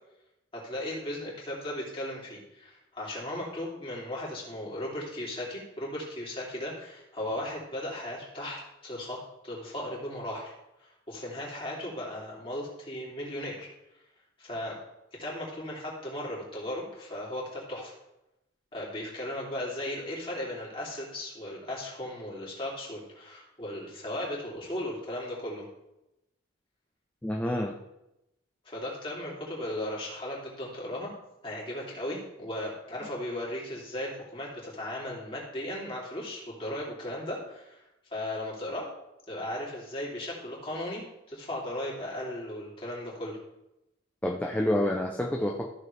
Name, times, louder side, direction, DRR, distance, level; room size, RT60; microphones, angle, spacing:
voice 1, 0.5-9.2 9.4-10.5 10.8-13.7 14.4-14.8 15.2-17.9 18.7-25.7 28.6-31.1 31.4-37.8 38.1-38.9 39.3-43.4, left 1 dB, 25° left, -5 dB, 3.1 m, -36 dB
voice 2, 27.2-27.8 44.2-45.7, left 1 dB, 10° left, 1 dB, 0.6 m, -28 dB
14.5 x 6.7 x 3.4 m, 0.91 s
head